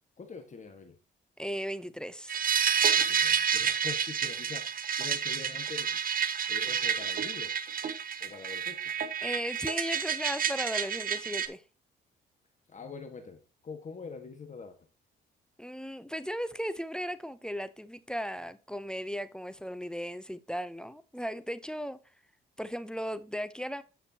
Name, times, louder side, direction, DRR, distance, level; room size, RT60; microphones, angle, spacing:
voice 1, 0.2-1.0 2.9-6.0 6.5-7.5 8.2-8.8 12.7-14.8, left 5 dB, 40° left, 1.7 m, -44 dB
voice 2, 1.4-2.4 9.2-11.6 15.6-22.0 22.6-23.8, equal, 5° left, 0.7 m, -36 dB
sound 1, 2.3-11.5, right 7 dB, 45° right, 1.0 m, -29 dB
9.7 x 6.6 x 2.9 m
cardioid pair, 90°, 20 cm